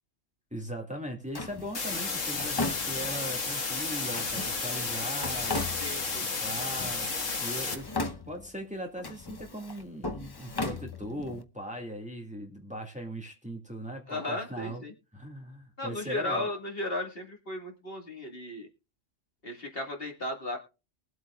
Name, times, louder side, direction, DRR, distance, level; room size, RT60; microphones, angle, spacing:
voice 1, 0.5-5.6 6.2-7.1 7.4-7.9 8.3-14.8 15.1-16.5, equal, 5° right, 2 dB, 2.2 m, -39 dB
Drawer open or close, 1.3-3.4 4.1-6.2 6.6-7.4 7.6-8.6 9.0-11.4, left 2 dB, 25° left, 0.7 m, -37 dB
sound 1, 1.7-7.7, left 4 dB, 85° left, 2.1 m, -32 dB
voice 2, 5.8-6.3 14.1-14.9 15.8-18.7 19.4-20.6, left 1 dB, 50° left, 2 dB, 2.2 m, -35 dB
22.0 x 8.2 x 2.4 m, 0.31 s
omnidirectional pair, 1.3 m